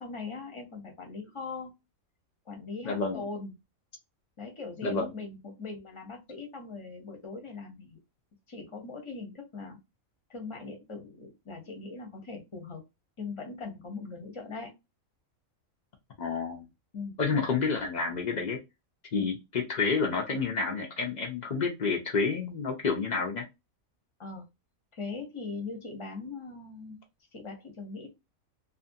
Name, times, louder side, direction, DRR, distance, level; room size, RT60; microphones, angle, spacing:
voice 1, 0.0-1.7 2.5-3.5 4.4-8.0 8.5-9.8 10.3-12.8 13.2-14.7 16.9-17.2 19.2-19.3 24.2-24.4 24.9-27.0 27.3-28.1, left 4 dB, 30° left, 2 dB, 0.6 m, -40 dB
voice 2, 2.8-3.2 4.8-5.1 16.2-16.6 17.2-18.6 19.1-23.4, left 4 dB, 80° left, 1 dB, 0.4 m, -29 dB
2.6 x 2.5 x 2.6 m, 0.23 s
omnidirectional pair, 1.4 m